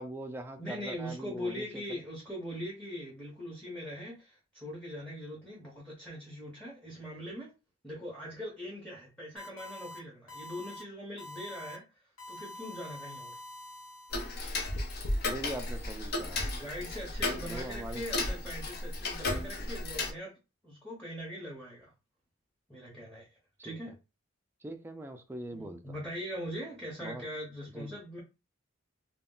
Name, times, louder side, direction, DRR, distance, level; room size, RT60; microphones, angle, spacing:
voice 1, 0.0-2.0 15.2-16.4 17.4-18.0 19.6-19.7 23.7-23.8 24.6-26.0 27.0-27.2 27.7-28.0, right 1 dB, 10° right, 0.3 m, -42 dB
voice 2, 0.6-7.5 7.8-11.8 12.3-13.4 16.4-20.3 20.6-21.9 22.7-23.3 23.6-23.9 25.5-28.2, equal, 5° left, 0.8 m, -41 dB
sound 1, 9.4-10.0 10.3-10.8 11.2-11.8 12.2-14.5, left 2 dB, 85° left, 1.3 m, -46 dB
Tick-tock, 14.1-20.1, left 2 dB, 50° left, 0.5 m, -34 dB
2.2 x 2.0 x 3.7 m
head